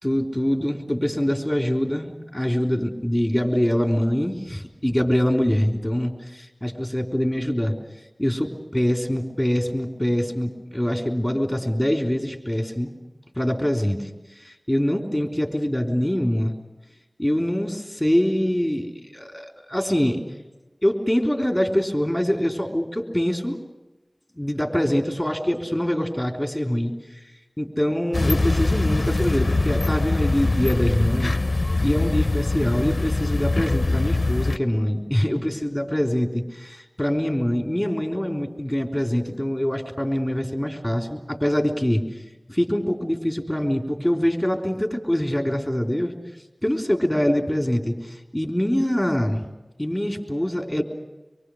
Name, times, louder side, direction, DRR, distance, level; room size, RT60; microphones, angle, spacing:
voice 1, 0.0-7.7 8.2-8.5 8.7-12.9 13.3-14.0 14.4-16.6 17.2-20.2 20.8-23.6 24.4-26.9 27.6-31.4 31.8-36.3 36.6-42.0 42.5-46.1 46.6-49.4 49.8-50.8, equal, 10° left, 2 dB, 3.5 m, -24 dB
sound 1, 28.1-34.6, left 2 dB, 60° left, 0.7 m, -23 dB
25.0 x 23.5 x 6.4 m, 1.1 s
wide cardioid pair, 45°, 0 cm